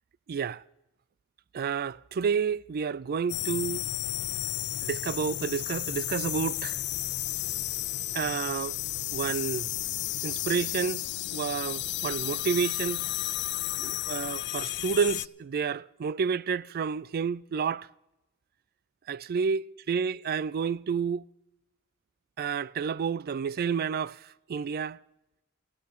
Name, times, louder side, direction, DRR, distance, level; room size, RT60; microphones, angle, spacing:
voice 1, 0.3-0.6 1.5-3.8 4.8-6.8 8.1-8.8 9.1-9.7 10.2-13.0 13.8-17.9 19.1-21.2 22.4-24.2 24.5-25.0, right 6 dB, 45° right, 0.4 m, -30 dB
sound 1, 3.3-15.3, left 16 dB, 55° left, 0.4 m, -33 dB
14.5 x 9.5 x 6.8 m
head